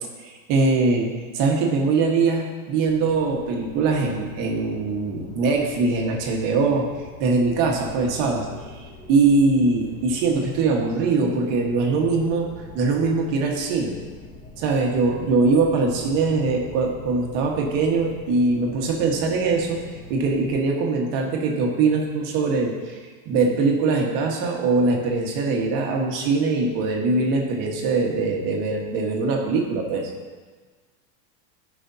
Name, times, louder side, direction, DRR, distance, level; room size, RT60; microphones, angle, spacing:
voice 1, 0.2-6.8 7.2-8.5 8.7-12.5 12.7-14.0 14.6-19.8 20.1-23.0 23.2-30.1, right 3 dB, 50° right, 0 dB, 1.6 m, -22 dB
sound 1, 2.8-20.5, left 2 dB, 15° left, 1.7 m, -43 dB
14.5 x 5.6 x 2.8 m, 1.4 s
supercardioid pair, 160°, 42 cm